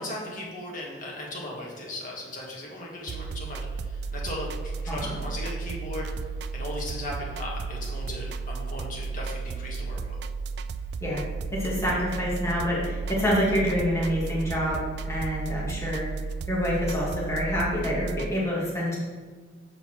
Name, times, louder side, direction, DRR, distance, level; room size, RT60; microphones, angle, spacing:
voice 1, 0.0-3.6 4.1-6.1 6.5-10.1, left 1 dB, 50° left, -3 dB, 1.7 m, -37 dB
sound 1, 3.1-18.3, right 4 dB, 65° right, 0.3 m, -34 dB
voice 2, 11.5-16.1 16.5-19.0, equal, 15° left, -6 dB, 2.1 m, -27 dB
6.8 x 5.7 x 4.5 m, 1.5 s
head